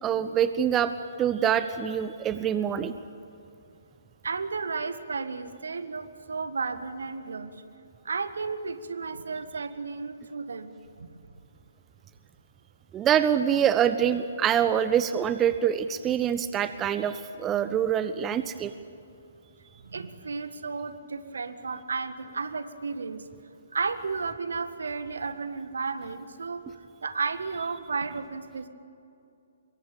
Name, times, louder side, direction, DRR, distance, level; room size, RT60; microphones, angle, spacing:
voice 1, 0.0-0.9 1.2-2.9 12.9-18.7, right 9 dB, 15° right, 12 dB, 0.7 m, -25 dB
voice 2, 4.2-7.6 8.0-11.1 19.8-23.3 23.7-28.7, right 4 dB, 65° right, 11 dB, 1.7 m, -33 dB
25.5 x 23.0 x 8.9 m, 2.6 s
figure-of-eight pair, 125°, 0 cm